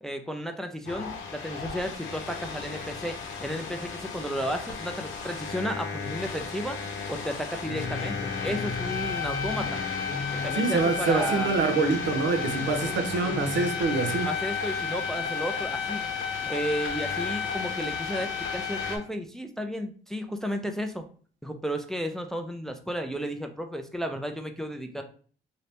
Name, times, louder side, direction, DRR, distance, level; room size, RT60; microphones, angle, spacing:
voice 1, 0.0-6.8 7.1-9.8 10.3-11.5 12.6-12.9 14.2-16.0 16.5-21.0 21.4-25.0, equal, ahead, 0.4 m, -33 dB
sound 1, 0.8-19.0, left 5 dB, 75° left, 0.8 m, -33 dB
sound 2, 7.6-14.1, left 3 dB, 55° left, 1.0 m, -38 dB
voice 2, 10.6-14.3, right 4 dB, 70° right, 0.6 m, -26 dB
2.8 x 2.7 x 3.3 m
cardioid pair, 90°, 20 cm